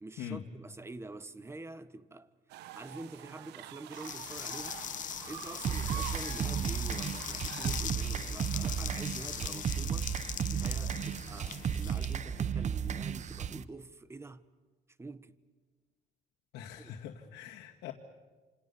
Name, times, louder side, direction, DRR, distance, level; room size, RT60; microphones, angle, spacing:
voice 1, 0.0-2.3 2.7-4.9 5.3-10.1 10.5-14.5 15.0-15.4 16.8-16.9, right 2 dB, 15° right, 1.3 m, -46 dB
sound 1, 2.5-7.8, right 13 dB, 85° right, 1.2 m, -46 dB
sound 2, 3.9-12.9, left 10 dB, 50° left, 1.2 m, -41 dB
sound 3, 5.6-13.6, right 8 dB, 45° right, 1.0 m, -34 dB
voice 2, 16.5-17.9, left 10 dB, 85° left, 2.0 m, -42 dB
28.0 x 27.0 x 7.1 m
cardioid pair, 110°, 17 cm